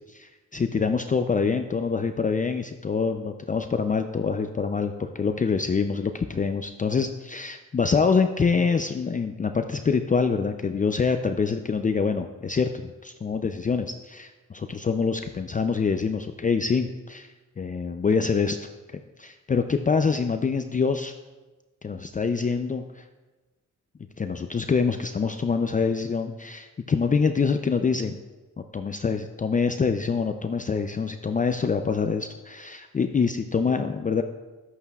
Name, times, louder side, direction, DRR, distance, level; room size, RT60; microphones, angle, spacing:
voice 1, 0.1-12.7 13.0-17.3 17.6-18.7 19.2-21.1 21.8-22.8 24.2-28.1 28.7-34.2, left 5 dB, 25° left, 7 dB, 0.4 m, -25 dB
11.0 x 8.2 x 2.3 m, 1.2 s
cardioid pair, 70°, 32 cm